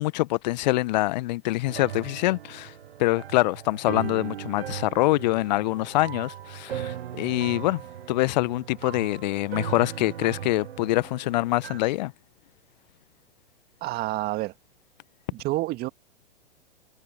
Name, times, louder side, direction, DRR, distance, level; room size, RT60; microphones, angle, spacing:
voice 1, 0.0-2.7 3.0-7.8 8.1-12.1, left 18 dB, 40° left, 1.0 m, -25 dB
sound 1, 1.7-11.8, right 10 dB, 65° right, 0.8 m, -38 dB
voice 2, 13.8-14.5 15.3-15.9, right 19 dB, 30° right, 1.8 m, -28 dB
figure-of-eight pair, 110°, 32 cm